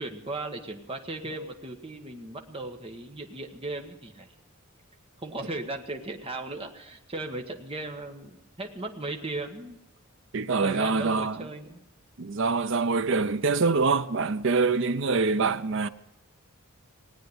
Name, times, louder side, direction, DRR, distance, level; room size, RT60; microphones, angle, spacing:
voice 1, 0.0-4.3 5.2-9.8 10.6-11.8 14.9-15.1, right 2 dB, 25° right, 1.4 m, -37 dB
voice 2, 10.3-11.5 12.2-15.9, right 4 dB, 60° right, 0.6 m, -25 dB
18.5 x 9.2 x 8.0 m
head